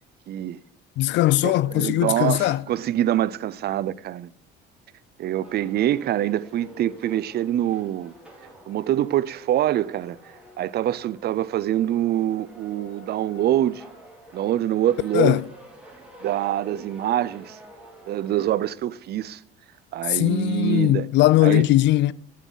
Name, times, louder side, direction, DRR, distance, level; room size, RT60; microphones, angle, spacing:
voice 1, 0.3-0.6 1.4-4.3 5.2-8.1 8.7-10.2 10.6-13.8 14.3-15.4 16.2-17.6 18.1-19.4 19.9-21.1 21.4-21.7, right 12 dB, 50° right, 0.5 m, -25 dB
voice 2, 1.0-2.6 15.1-15.4 20.1-22.1, left 16 dB, 60° left, 0.4 m, -19 dB
sound 1, 5.4-18.8, equal, 5° right, 3.8 m, -48 dB
15.5 x 7.2 x 4.0 m
cardioid pair, 105°, 21 cm